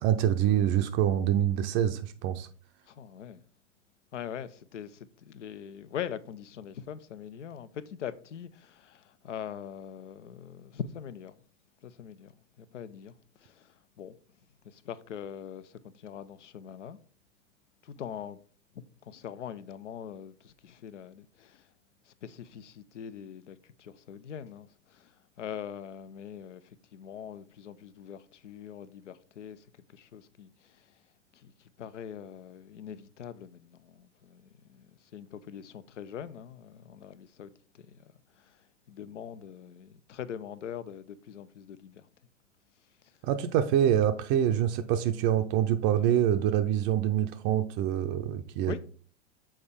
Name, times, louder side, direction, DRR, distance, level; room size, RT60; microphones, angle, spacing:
voice 1, 0.0-2.5 43.2-48.8, right 10 dB, 35° right, 0.4 m, -26 dB
voice 2, 2.9-3.4 4.1-11.4 11.8-14.2 14.6-17.0 17.8-18.4 19.0-21.7 22.1-30.9 31.3-42.1 43.9-44.0 48.7-48.8, left 8 dB, 85° left, 0.5 m, -43 dB
6.4 x 4.3 x 3.5 m
hypercardioid pair, 95°, 35 cm